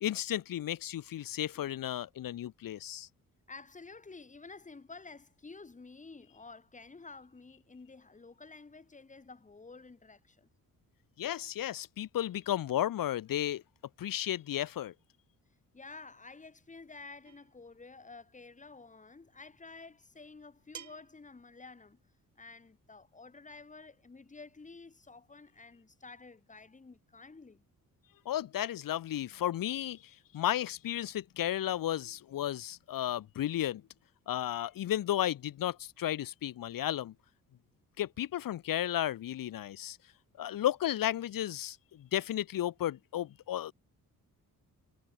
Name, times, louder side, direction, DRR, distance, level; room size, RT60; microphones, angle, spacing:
voice 1, 0.0-3.1 11.2-13.6 14.0-14.9 28.3-33.8 34.3-37.1 38.0-40.0 40.4-43.7, left 12 dB, 70° left, 1.8 m, -33 dB
voice 2, 3.5-10.5 15.7-22.0 22.4-27.6, left 3 dB, 20° left, 6.7 m, -51 dB
sound 1, 17.2-17.6 19.1-19.2 20.7-21.2, right 9 dB, 55° right, 4.6 m, -49 dB
wide cardioid pair, 155°, 34 cm